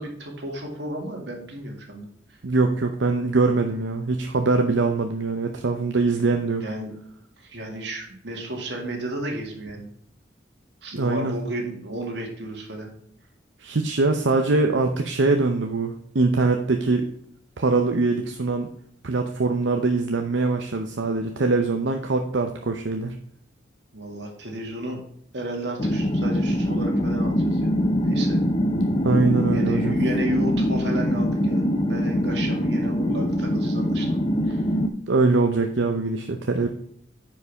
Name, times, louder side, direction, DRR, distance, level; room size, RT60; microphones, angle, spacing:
voice 1, 0.0-2.4 6.6-6.9 7.4-9.9 10.8-12.9 23.9-25.0 25.3-27.7 28.0-28.4 29.5-34.2 34.5-34.6, right 1 dB, 70° right, 1 dB, 2.2 m, -33 dB
voice 2, 2.4-6.6 10.9-11.3 13.6-17.1 17.6-18.7 19.0-23.2 29.0-29.9 35.1-36.7, right 3 dB, 90° right, 4 dB, 0.7 m, -23 dB
sound 1, 25.8-34.9, equal, 30° left, 0.7 m, -23 dB
9.5 x 5.4 x 3.5 m, 0.68 s
head